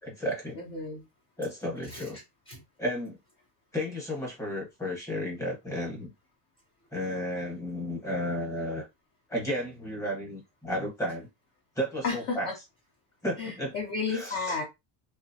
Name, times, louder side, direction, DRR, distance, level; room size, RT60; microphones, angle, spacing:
voice 1, 0.0-0.6 1.4-2.2 2.8-3.2 3.7-6.1 6.9-8.9 9.3-11.3 11.8-12.5 13.2-13.8 14.1-14.6, equal, 5° left, 0.8 m, -33 dB
voice 2, 0.7-1.0 2.5-2.6 12.0-12.6 13.4-14.6, left 4 dB, 30° left, 0.4 m, -32 dB
2.8 x 2.0 x 2.6 m
cardioid pair, 175°, 48 cm